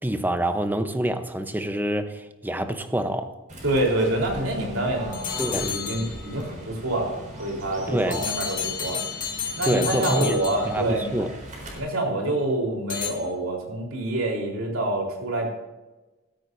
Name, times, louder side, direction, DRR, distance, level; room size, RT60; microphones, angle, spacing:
voice 1, 0.0-3.3 5.4-5.8 7.9-8.3 9.6-11.3, right 1 dB, 10° right, 0.8 m, -26 dB
Fowl / Bird, 3.5-11.8, right 1 dB, 40° right, 4.1 m, -40 dB
voice 2, 3.6-5.2 5.5-9.0 9.6-11.2 11.7-15.5, right 1 dB, 90° right, 3.9 m, -26 dB
sound 1, 5.1-6.5 8.1-11.1 12.9-13.1, left 7 dB, 40° left, 1.9 m, -31 dB
16.0 x 13.5 x 2.7 m
head